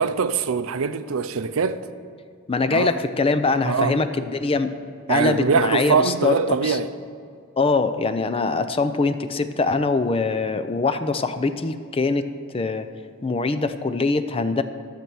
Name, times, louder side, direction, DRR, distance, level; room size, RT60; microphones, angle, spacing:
voice 1, 0.0-1.8 2.7-2.9 3.6-4.0 5.1-6.9, right 5 dB, 70° right, 0.5 m, -22 dB
voice 2, 2.5-4.7 5.1-6.8 7.6-12.3 12.5-12.9 13.2-14.6, left 3 dB, 25° left, 0.4 m, -23 dB
12.0 x 6.8 x 6.2 m
head